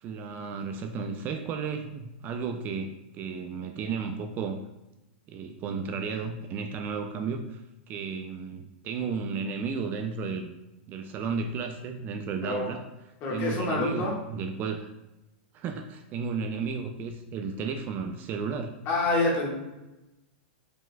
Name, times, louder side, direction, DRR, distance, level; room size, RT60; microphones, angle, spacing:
voice 1, 0.0-4.6 5.3-7.6 7.9-10.5 10.9-12.8 13.3-14.9 15.5-18.7, right 5 dB, 30° right, 5 dB, 0.3 m, -33 dB
voice 2, 12.4-12.8 13.2-14.1 18.8-19.5, left 2 dB, 40° left, -3 dB, 1.5 m, -27 dB
4.8 x 3.7 x 2.2 m, 0.99 s
hypercardioid pair, 130°, 6 cm